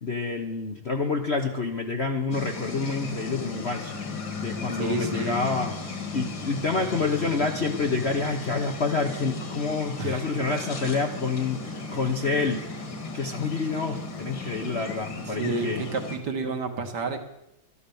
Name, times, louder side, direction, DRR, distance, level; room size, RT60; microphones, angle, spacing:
voice 1, 0.0-3.9 4.4-5.7 6.1-12.6 13.1-15.8, left 4 dB, 45° left, 3 dB, 0.9 m, -28 dB
sound 1, 2.3-16.2, left 3 dB, 60° left, 2.6 m, -35 dB
voice 2, 4.8-5.4 10.0-10.3 15.4-17.2, right 3 dB, 55° right, 5 dB, 1.9 m, -30 dB
13.0 x 11.0 x 7.1 m, 0.83 s
omnidirectional pair, 2.3 m